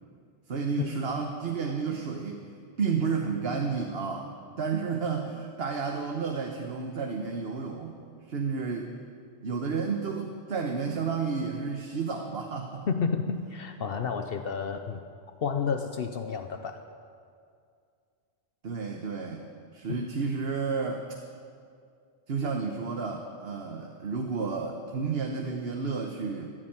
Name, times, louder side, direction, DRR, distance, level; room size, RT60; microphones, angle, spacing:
voice 1, 0.5-2.4 2.8-4.3 4.6-8.0 8.3-8.9 9.4-12.9 18.6-19.5 19.7-21.1 22.3-26.5, right 5 dB, 65° right, 2 dB, 1.3 m, -31 dB
voice 2, 12.9-15.0 15.4-16.8 19.9-20.1, left 6 dB, 65° left, 7 dB, 0.9 m, -30 dB
15.0 x 10.5 x 8.9 m, 2.3 s
omnidirectional pair, 1.1 m